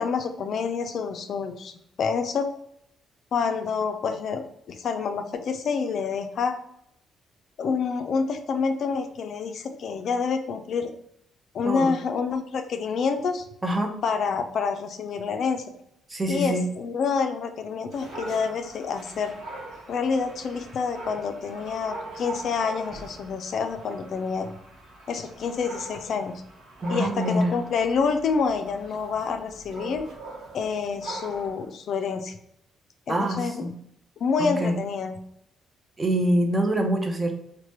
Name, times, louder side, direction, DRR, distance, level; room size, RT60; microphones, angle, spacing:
voice 1, 0.0-2.5 3.3-6.6 7.6-10.9 11.5-13.5 14.0-15.7 16.3-19.3 19.9-24.5 25.1-26.3 26.9-30.1 30.5-32.4 33.1-33.7 34.2-35.2, left 5 dB, 65° left, 7 dB, 0.3 m, -27 dB
voice 2, 11.6-12.0 13.6-13.9 16.1-16.7 26.8-27.6 33.1-33.7 34.4-34.8 36.0-37.3, right 1 dB, 20° right, 3 dB, 0.6 m, -25 dB
Dog, 17.9-31.7, right 2 dB, 85° right, 0.8 m, -41 dB
3.1 x 2.1 x 2.9 m, 0.74 s
cardioid pair, 90°, 0 cm